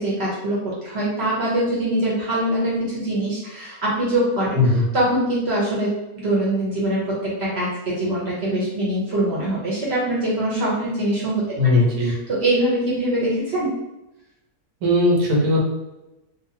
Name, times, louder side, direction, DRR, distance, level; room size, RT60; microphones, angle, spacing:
voice 1, 0.0-4.6 4.9-11.4 12.0-13.7, right 1 dB, 55° right, -6 dB, 0.8 m, -23 dB
voice 2, 4.5-4.8 11.6-12.1 14.8-15.6, left 2 dB, 90° right, -2 dB, 1.3 m, -18 dB
2.8 x 2.4 x 2.6 m, 0.96 s
omnidirectional pair, 1.6 m